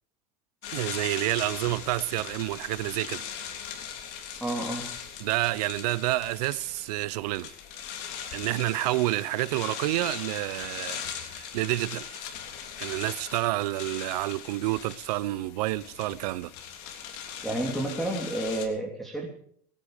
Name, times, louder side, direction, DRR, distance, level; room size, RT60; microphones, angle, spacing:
sound 1, 0.6-18.7, left 8 dB, 65° left, 3.3 m, -40 dB
voice 1, 0.7-3.2 5.2-7.5 8.3-12.2 12.8-16.5, right 18 dB, 85° right, 0.6 m, -29 dB
voice 2, 4.4-5.0 17.4-19.3, right 1 dB, ahead, 3.3 m, -30 dB
22.5 x 10.0 x 5.1 m
supercardioid pair, 115°, 20 cm